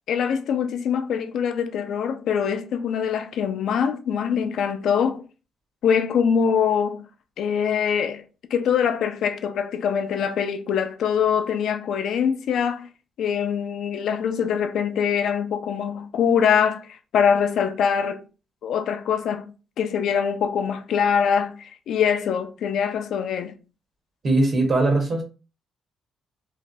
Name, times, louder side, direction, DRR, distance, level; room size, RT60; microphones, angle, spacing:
voice 1, 0.1-5.2 5.8-7.1 7.4-8.2 8.5-12.9 13.2-18.2 18.6-19.5 19.8-23.6, left 7 dB, 70° left, 0.3 m, -23 dB
voice 2, 24.2-25.2, right 2 dB, 50° right, 1.1 m, -20 dB
3.1 x 2.1 x 2.6 m
cardioid pair, 90°, 0 cm